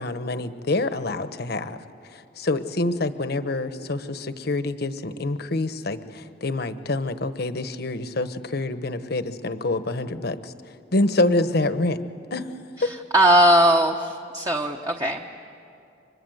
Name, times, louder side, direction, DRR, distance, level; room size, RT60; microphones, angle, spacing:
voice 1, 0.0-1.8 2.1-10.5 10.9-12.0 12.3-12.5 12.8-12.9, left 2 dB, 60° left, 11 dB, 1.1 m, -26 dB
voice 2, 12.8-15.3, right 1 dB, 20° right, 2 dB, 1.1 m, -19 dB
30.0 x 25.0 x 8.0 m, 2.5 s
head